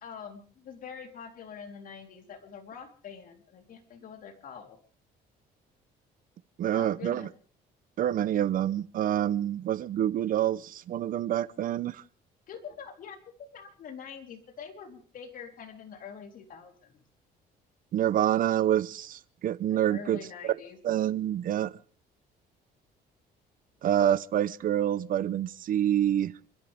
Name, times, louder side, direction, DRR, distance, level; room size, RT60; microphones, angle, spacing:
voice 1, 0.0-4.8 6.7-7.3 12.5-13.2 13.5-17.0 19.7-20.8, left 7 dB, 55° left, 3.7 m, -45 dB
voice 2, 6.6-7.3 8.0-12.0 17.9-20.2 20.4-20.5 20.8-21.7 23.8-26.3, right 11 dB, 55° right, 0.7 m, -27 dB
29.5 x 13.5 x 3.5 m
cardioid pair, 110°, 17 cm